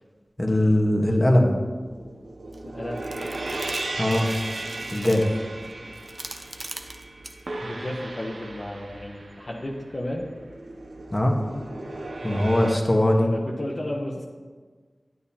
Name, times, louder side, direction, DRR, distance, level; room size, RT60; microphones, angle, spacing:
voice 1, 0.4-1.6 4.0-4.3 4.9-5.4 7.6-7.7 11.1-11.4 12.2-13.3, left 1 dB, 25° left, 1 dB, 1.4 m, -21 dB
sound 1, 1.8-12.7, right 2 dB, 80° right, 0.7 m, -36 dB
sound 2, 2.5-2.6 3.0-7.4, right 2 dB, 45° right, 0.7 m, -41 dB
voice 2, 2.7-3.1 7.7-10.2 12.3-12.5 13.2-14.2, left 1 dB, 45° left, -2 dB, 1.0 m, -33 dB
10.5 x 9.2 x 2.9 m, 1.5 s
wide cardioid pair, 50°, 0 cm